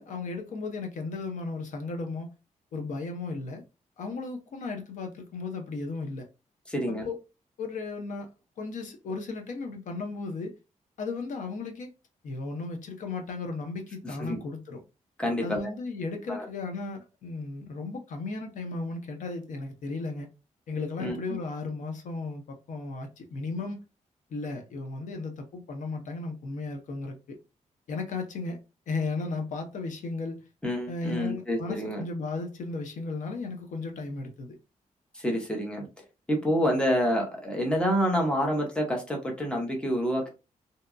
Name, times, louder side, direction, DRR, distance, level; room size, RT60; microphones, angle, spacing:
voice 1, 0.0-2.3 2.7-3.6 4.0-6.3 6.9-7.2 7.6-8.3 8.6-10.5 11.0-11.9 12.2-14.8 15.4-20.3 20.7-23.8 24.3-27.4 27.9-28.6 28.9-30.5 30.9-34.6, left 3 dB, 70° left, 0.6 m, -35 dB
voice 2, 6.7-7.1 14.0-14.4 15.2-15.6 16.3-16.5 21.0-21.2 30.6-32.0 35.1-35.9 36.3-40.3, equal, 5° left, 0.7 m, -28 dB
2.8 x 2.2 x 2.4 m
wide cardioid pair, 150°, 13 cm